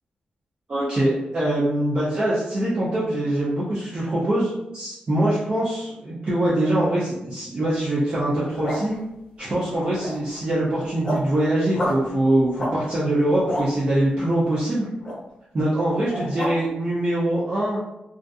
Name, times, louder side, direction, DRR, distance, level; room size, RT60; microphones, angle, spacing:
voice 1, 0.7-8.9 9.4-14.9 15.5-17.8, right 1 dB, 30° right, -8 dB, 0.5 m, -23 dB
sound 1, 8.3-9.0 9.7-10.3 10.7-11.3 11.7-12.0 12.5-12.7 13.1-13.7 15.0-15.2 16.0-16.5, left 1 dB, 25° left, 0.7 m, -30 dB
2.5 x 2.4 x 2.3 m, 0.89 s
wide cardioid pair, 180°, 3 cm